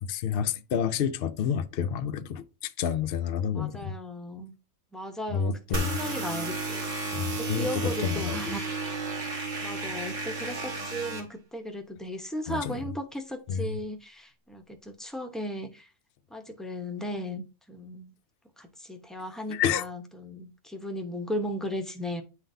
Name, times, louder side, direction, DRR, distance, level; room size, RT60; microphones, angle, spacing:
voice 1, 0.0-4.0 5.3-6.0 7.1-8.6 12.5-12.8 13.5-13.8 19.5-19.9, left 8 dB, 65° left, 0.6 m, -29 dB
voice 2, 3.5-4.5 4.9-8.6 9.6-15.9 16.3-18.1 18.6-22.2, equal, ahead, 0.5 m, -36 dB
sound 1, 5.7-11.2, right 3 dB, 60° right, 1.7 m, -33 dB
9.9 x 3.8 x 2.7 m
omnidirectional pair, 1.5 m